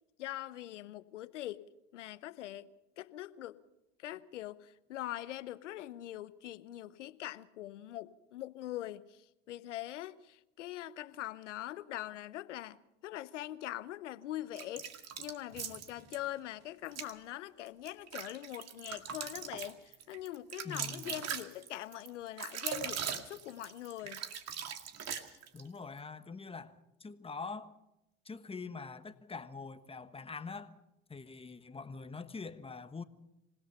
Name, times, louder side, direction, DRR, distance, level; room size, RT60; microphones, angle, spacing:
voice 1, 0.2-1.7 1.9-3.6 4.0-24.2 25.2-25.4, left 14 dB, 85° left, 0.9 m, -43 dB
sound 1, 14.5-16.2 16.8-17.1 17.7-25.7, right 8 dB, 45° right, 2.2 m, -40 dB
voice 2, 20.6-21.1 25.5-27.8 28.2-30.8 31.1-33.0, left 4 dB, 15° left, 1.3 m, -44 dB
26.5 x 17.0 x 5.6 m
hypercardioid pair, 80°, 35 cm